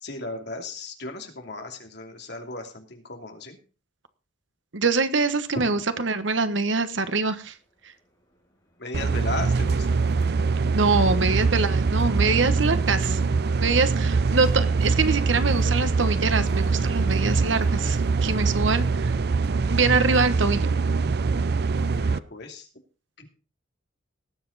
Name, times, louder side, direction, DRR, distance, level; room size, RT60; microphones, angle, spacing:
voice 1, 0.0-3.6 5.6-5.7 8.8-10.0 21.9-22.7 23.2-23.3, left 2 dB, 60° left, 4 dB, 2.8 m, -36 dB
voice 2, 4.7-7.5 10.7-13.2 13.6-19.1 19.7-20.7, right 4 dB, 70° right, 11 dB, 1.3 m, -24 dB
sound 1, 7.6-18.0, equal, 25° left, 4.2 m, -50 dB
sound 2, 8.9-22.2, right 4 dB, 55° right, 0.5 m, -23 dB
19.0 x 7.9 x 4.1 m, 0.34 s
head